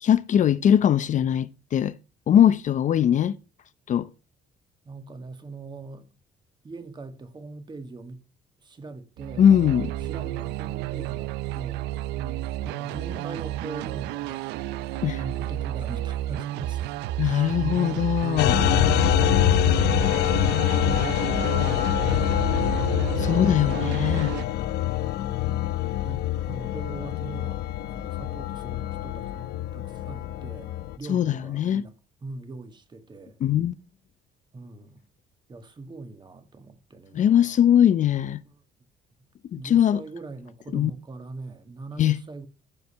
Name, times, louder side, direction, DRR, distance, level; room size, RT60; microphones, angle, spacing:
voice 1, 0.0-1.9 2.3-3.4 3.9-4.1 9.4-9.9 15.0-15.2 17.2-18.6 23.2-24.4 31.1-31.9 33.4-33.7 37.1-38.4 39.5-40.0 40.7-40.9 42.0-42.2, left 10 dB, 45° left, 0.6 m, -21 dB
voice 2, 4.9-6.1 6.6-8.2 8.6-9.5 10.0-11.9 12.2-20.3 20.6-22.9 23.2-24.0 26.0-27.7 27.9-33.4 34.5-35.0 35.5-37.6 38.4-38.5 39.6-42.5, right 3 dB, 25° right, 1.8 m, -41 dB
sound 1, 9.2-24.4, right 14 dB, 90° right, 0.5 m, -31 dB
sound 2, 18.4-31.0, left 13 dB, 80° left, 0.8 m, -25 dB
14.5 x 4.8 x 5.6 m
cardioid pair, 110°, 17 cm